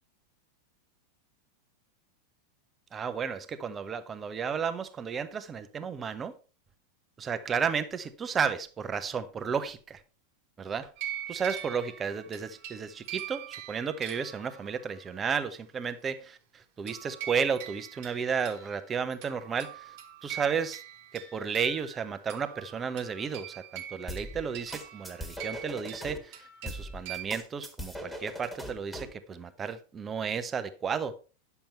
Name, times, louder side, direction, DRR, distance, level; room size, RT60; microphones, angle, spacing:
voice 1, 2.9-6.4 7.2-10.0 10.6-10.9 11.3-19.9 20.2-20.8 21.1-31.1, right 6 dB, 20° right, 1.0 m, -33 dB
sound 1, 11.0-14.9 16.9-27.2, right 11 dB, 45° right, 1.5 m, -43 dB
sound 2, 24.1-26.2 26.7-29.2, equal, 5° left, 1.9 m, -40 dB
10.5 x 7.0 x 4.3 m
figure-of-eight pair, 90°, 0 cm